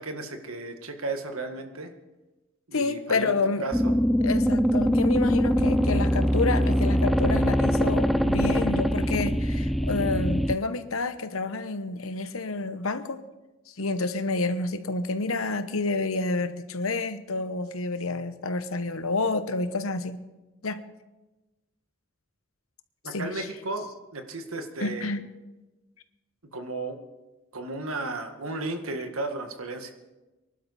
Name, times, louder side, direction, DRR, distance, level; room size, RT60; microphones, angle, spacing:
voice 1, 0.0-1.9 2.7-3.3 3.6-3.9 23.0-23.9 24.1-25.1 26.5-27.0 27.5-29.9, right 2 dB, 90° right, 6 dB, 1.7 m, -34 dB
voice 2, 2.7-3.6 4.2-13.2 13.7-20.2 20.6-20.8 23.1-23.5 24.8-25.2, left 3 dB, 85° left, 11 dB, 1.1 m, -29 dB
sound 1, 3.7-10.6, equal, ahead, 0.5 m, -23 dB
24.0 x 11.5 x 4.2 m, 1.1 s
head